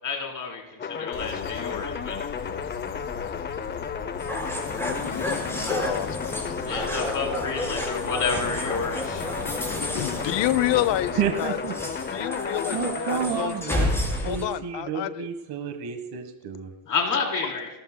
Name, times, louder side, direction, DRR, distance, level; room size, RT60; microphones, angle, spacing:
voice 1, 0.0-2.2 6.7-9.3 16.9-17.7, left 4 dB, 40° left, 0 dB, 3.8 m, -30 dB
sound 1, 0.8-14.5, left 6 dB, 20° left, 0.6 m, -33 dB
sound 2, 1.1-11.3, left 6 dB, 80° left, 2.8 m, -41 dB
sound 3, 4.2-14.4, equal, 5° left, 4.9 m, -31 dB
voice 2, 4.8-6.9 9.8-11.6 12.1-15.3 17.4-17.5, left 14 dB, 60° left, 17 dB, 0.7 m, -29 dB
voice 3, 11.1-11.7 12.7-13.9 14.2-16.7, right 6 dB, 50° right, 6 dB, 1.4 m, -30 dB
28.5 x 14.0 x 2.2 m, 1.1 s
cardioid pair, 115°, 48 cm